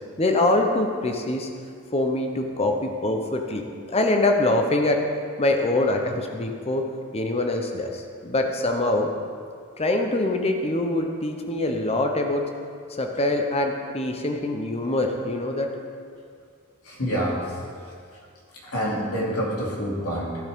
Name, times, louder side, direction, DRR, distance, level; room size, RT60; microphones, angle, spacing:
voice 1, 0.2-1.5 1.9-5.0 5.4-6.8 7.1-9.1 9.8-12.4 13.0-15.7, left 2 dB, 25° left, 3 dB, 0.8 m, -24 dB
voice 2, 16.8-17.6 17.9-18.0 18.6-20.5, equal, 85° left, -5 dB, 2.7 m, -27 dB
14.5 x 8.6 x 3.7 m, 2.2 s
head